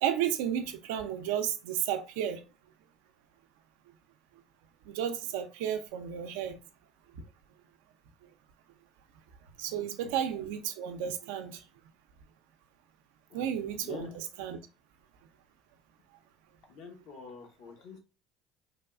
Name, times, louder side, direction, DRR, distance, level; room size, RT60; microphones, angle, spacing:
voice 1, 0.0-2.4 4.9-6.6 9.6-11.6 13.3-14.6, right 9 dB, 80° right, 0.4 m, -32 dB
voice 2, 9.8-10.2 13.3-13.4 13.8-14.2 16.7-18.0, left 4 dB, 70° left, 0.9 m, -46 dB
3.3 x 2.3 x 2.3 m
supercardioid pair, 80°, 0 cm